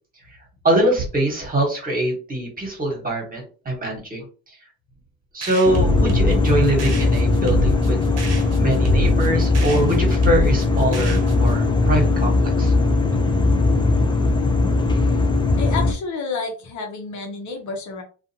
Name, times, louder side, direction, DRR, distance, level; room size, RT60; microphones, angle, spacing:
voice 1, 0.6-4.2 5.3-8.0 8.5-12.7, right 1 dB, 25° right, 1 dB, 1.4 m, -23 dB
sound 1, 5.4-11.6, equal, 50° right, 0.9 m, -26 dB
sound 2, 5.6-15.9, left 3 dB, 15° left, 0.5 m, -19 dB
voice 2, 15.6-18.0, left 4 dB, 60° left, 3 dB, 1.0 m, -30 dB
2.4 x 2.4 x 2.8 m, 0.36 s
supercardioid pair, 80°, 33 cm